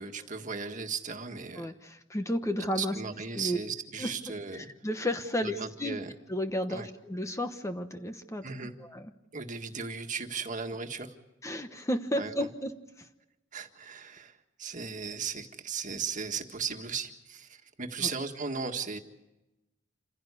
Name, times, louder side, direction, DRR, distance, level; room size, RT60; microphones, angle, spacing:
voice 1, 0.0-1.7 2.8-4.7 5.4-6.1 6.7-6.9 8.4-8.7 9.3-11.2 12.2-12.3 13.5-19.0, right 5 dB, 40° right, 5 dB, 1.8 m, -36 dB
voice 2, 1.6-3.0 3.3-3.6 4.0-6.0 6.3-8.4 8.8-9.1 11.4-13.1 18.0-18.1, equal, 15° left, 8 dB, 1.1 m, -33 dB
27.5 x 16.0 x 8.3 m, 0.97 s
head